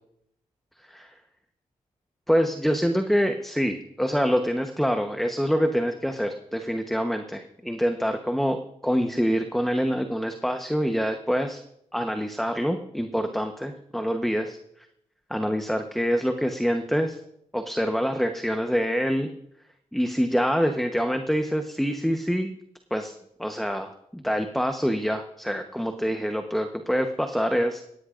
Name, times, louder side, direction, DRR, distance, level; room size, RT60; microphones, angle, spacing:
voice 1, 2.3-11.6 11.9-14.6 15.3-17.2 17.5-19.3 19.9-22.5 22.9-23.1 23.4-27.8, equal, ahead, 6 dB, 1.0 m, -26 dB
18.0 x 16.0 x 2.6 m, 0.76 s
cardioid pair, 65°, 14 cm